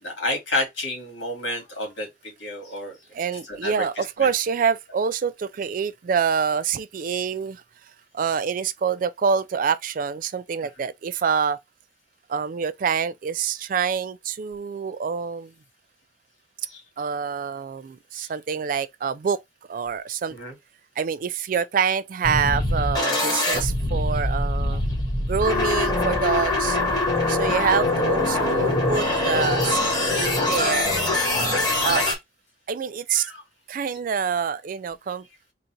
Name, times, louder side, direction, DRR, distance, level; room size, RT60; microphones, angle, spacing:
voice 1, 0.0-3.0 3.5-4.3 16.7-16.8 18.1-18.3 20.3-20.5 30.1-30.5 31.0-31.1 31.8-32.1 33.1-33.4, left 1 dB, 80° left, 2.1 m, -31 dB
voice 2, 3.1-7.6 8.1-11.6 12.3-15.5 17.0-19.4 19.7-20.4 21.0-24.8 25.3-26.8 27.3-30.9 31.8-32.1 32.7-33.3 33.7-35.3, right 6 dB, 45° right, 0.3 m, -26 dB
sound 1, 22.2-32.1, left 2 dB, 20° left, 1.4 m, -23 dB
3.9 x 2.4 x 4.4 m
head